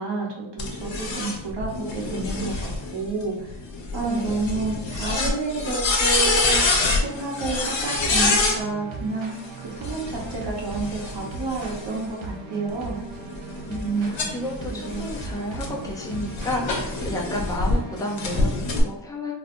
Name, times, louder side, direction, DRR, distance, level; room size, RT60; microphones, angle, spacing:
voice 1, 0.0-3.6 3.9-6.6 7.0-9.4 9.6-13.0 13.8-14.1 14.7-15.1, right 3 dB, 60° right, -2 dB, 0.9 m, -30 dB
sound 1, 0.6-8.6 9.7-12.1 12.7-17.7 18.2-18.8, left 3 dB, 75° left, 0.8 m, -26 dB
voice 2, 4.0-4.4 13.7-19.3, left 1 dB, 10° left, -2 dB, 0.4 m, -32 dB
sound 2, 6.5-18.4, right 4 dB, 85° right, 0.7 m, -38 dB
4.2 x 2.3 x 2.5 m, 0.82 s
wide cardioid pair, 175°, 46 cm